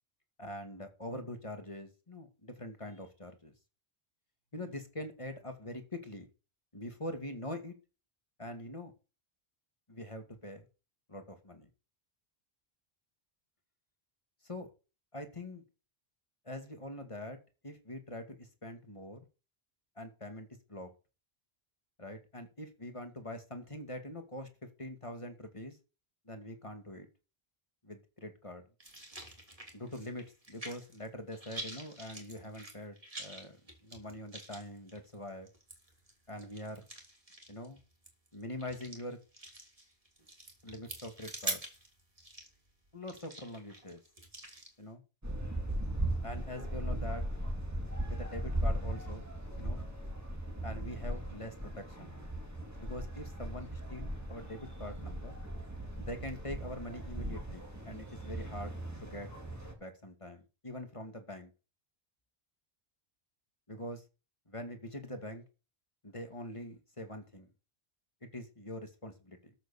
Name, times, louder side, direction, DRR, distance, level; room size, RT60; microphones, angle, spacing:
voice 1, 0.4-3.5 4.5-6.3 6.7-7.8 8.4-8.9 9.9-10.7 11.1-11.7 14.4-14.7 15.1-15.6 16.4-17.4 17.6-19.2 20.0-20.9 22.0-24.5 24.8-25.8 26.3-27.1 27.8-28.6 29.7-35.5 36.3-36.8 37.5-37.8 38.3-39.2 40.6-41.6 42.9-44.0 44.8-45.0 46.2-47.2 48.0-49.2 49.6-49.8 50.6-52.2 52.8-55.4 56.0-59.3 59.8-61.5 63.7-64.0 64.5-65.4 66.0-67.5 68.2-69.5, left 1 dB, 30° left, 6 dB, 2.3 m, -44 dB
sound 1, 28.8-31.1 31.3-44.7, right 1 dB, 35° right, 3.3 m, -45 dB
sound 2, 45.2-59.7, right 1 dB, 15° right, 2.9 m, -38 dB
13.0 x 6.5 x 7.0 m, 0.32 s
omnidirectional pair, 1.1 m